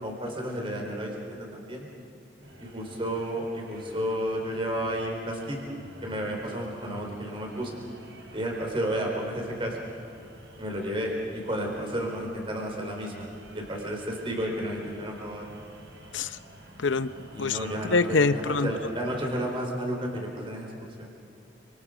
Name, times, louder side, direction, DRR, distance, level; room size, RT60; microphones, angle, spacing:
voice 1, 0.0-1.9 2.6-5.6 6.0-7.8 8.3-9.8 10.6-13.3 13.5-15.5 17.3-21.1, equal, 30° right, 0 dB, 4.2 m, -32 dB
sound 1, 2.4-19.6, right 1 dB, 70° right, 4.1 m, -49 dB
voice 2, 16.8-17.1 17.4-18.7, left 4 dB, 85° left, 12 dB, 0.7 m, -25 dB
29.5 x 27.0 x 5.1 m, 2.5 s
head